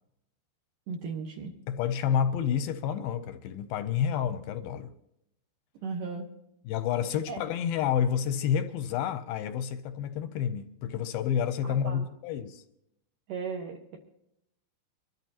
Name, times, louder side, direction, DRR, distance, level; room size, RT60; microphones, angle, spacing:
voice 1, 0.9-1.5 5.8-6.3 7.3-7.4 11.6-12.1 13.3-14.0, right 5 dB, 65° right, 2.5 m, -36 dB
voice 2, 1.7-4.9 6.7-12.6, left 8 dB, 80° left, 2.3 m, -29 dB
25.0 x 13.5 x 2.9 m
omnidirectional pair, 4.7 m